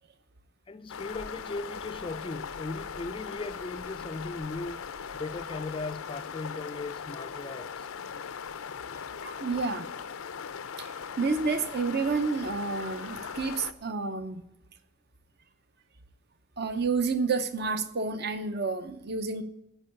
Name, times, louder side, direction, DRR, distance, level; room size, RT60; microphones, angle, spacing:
voice 1, 0.7-4.8 5.2-7.9, left 3 dB, 25° left, 0.3 m, -38 dB
sound 1, 0.9-13.7, left 6 dB, 75° left, 0.5 m, -39 dB
voice 2, 9.2-9.9 10.8-14.4 16.6-19.4, right 4 dB, 50° right, 0.7 m, -30 dB
13.5 x 4.7 x 8.8 m
head